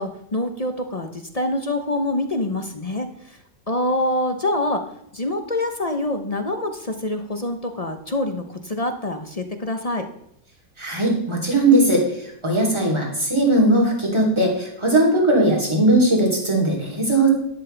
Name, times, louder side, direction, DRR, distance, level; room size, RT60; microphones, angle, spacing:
voice 1, 0.0-3.4 3.7-4.8 5.1-10.1, left 1 dB, 35° left, 6 dB, 0.6 m, -25 dB
voice 2, 10.8-12.0 12.4-17.3, right 1 dB, 15° right, -2 dB, 3.3 m, -18 dB
12.0 x 11.5 x 3.4 m, 0.74 s
omnidirectional pair, 2.0 m